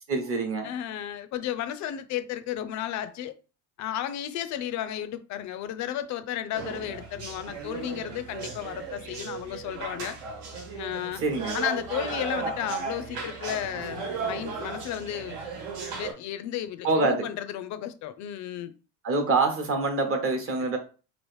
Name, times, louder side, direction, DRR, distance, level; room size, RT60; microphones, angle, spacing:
voice 1, 0.1-0.7 11.2-11.6 16.8-17.3 19.0-20.8, right 3 dB, 35° right, 0.8 m, -25 dB
voice 2, 0.6-3.3 3.8-10.2 10.7-11.2 11.5-15.4 16.0-18.7, left 11 dB, 50° left, 0.4 m, -33 dB
sound 1, 6.5-16.1, right 4 dB, 80° right, 1.2 m, -35 dB
3.0 x 2.5 x 3.2 m
cardioid pair, 130°, 37 cm